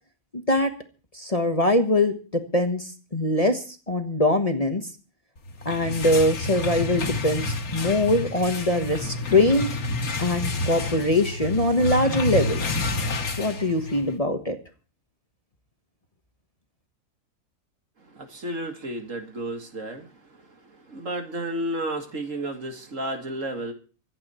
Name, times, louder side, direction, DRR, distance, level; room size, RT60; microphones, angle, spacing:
voice 1, 1.1-4.9 5.6-9.7 10.2-12.6 13.4-14.6, left 1 dB, 25° left, 6 dB, 1.3 m, -23 dB
sound 1, 5.5-14.1, left 2 dB, 75° left, 2.0 m, -29 dB
voice 2, 18.1-20.1 20.9-23.7, right 1 dB, 60° right, 5 dB, 2.4 m, -32 dB
24.5 x 8.8 x 4.4 m, 0.37 s
omnidirectional pair, 1.5 m